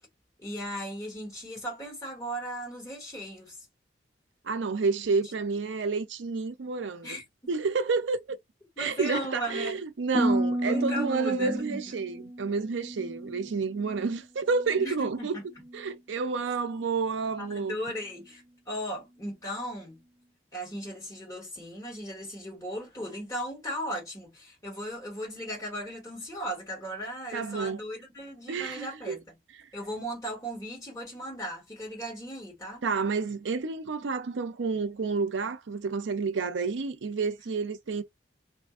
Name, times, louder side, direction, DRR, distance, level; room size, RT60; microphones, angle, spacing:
voice 1, 0.4-3.6 7.0-7.5 8.8-9.8 10.7-11.8 14.8-15.4 17.4-20.0 20.5-29.4 29.7-32.8, equal, 20° left, 1.6 m, -37 dB
voice 2, 4.4-7.1 7.5-8.4 8.8-15.4 15.7-17.8 27.3-27.8 28.5-29.2 32.8-38.0, right 4 dB, 80° right, 0.5 m, -30 dB
Harp, 10.1-14.2 14.5-15.1 15.6-15.9, right 1 dB, 15° right, 0.7 m, -32 dB
2.6 x 2.5 x 2.4 m
head